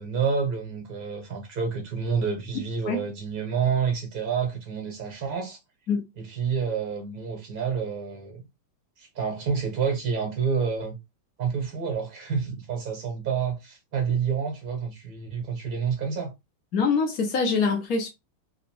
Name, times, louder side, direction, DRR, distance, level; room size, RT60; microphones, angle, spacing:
voice 1, 0.0-5.6 6.2-8.4 9.0-11.0 11.4-16.3, right 6 dB, 45° right, 0.9 m, -28 dB
voice 2, 16.7-18.1, left 4 dB, 40° left, 0.6 m, -24 dB
2.5 x 2.0 x 3.0 m
figure-of-eight pair, 90°, 0 cm